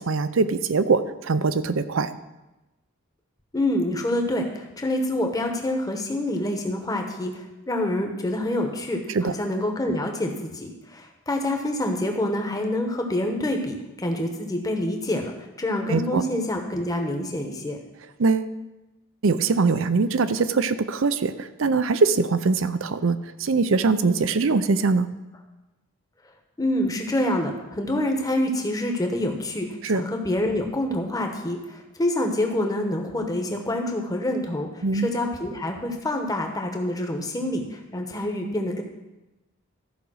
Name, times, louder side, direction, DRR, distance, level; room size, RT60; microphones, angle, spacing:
voice 1, 0.0-2.1 9.1-9.3 15.9-16.2 18.2-18.5 19.2-25.2 29.8-30.0 34.8-35.1, right 4 dB, 65° right, 13 dB, 0.5 m, -22 dB
voice 2, 3.5-17.8 26.6-29.7 29.9-38.8, left 1 dB, 15° left, 3 dB, 1.1 m, -27 dB
13.5 x 5.1 x 6.3 m, 1.0 s
head